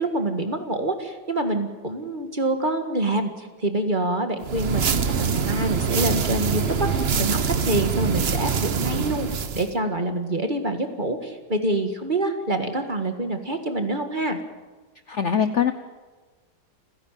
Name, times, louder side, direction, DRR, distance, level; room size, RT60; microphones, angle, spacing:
voice 1, 0.0-3.3 3.6-6.6 6.9-7.4 7.6-9.3 9.5-14.4, right 1 dB, 25° right, 6 dB, 1.8 m, -26 dB
sound 1, 4.4-9.7, right 6 dB, 45° right, 0.9 m, -24 dB
voice 2, 15.1-15.7, left 8 dB, 50° left, 10 dB, 0.9 m, -22 dB
30.0 x 11.0 x 9.2 m, 1.3 s
omnidirectional pair, 2.1 m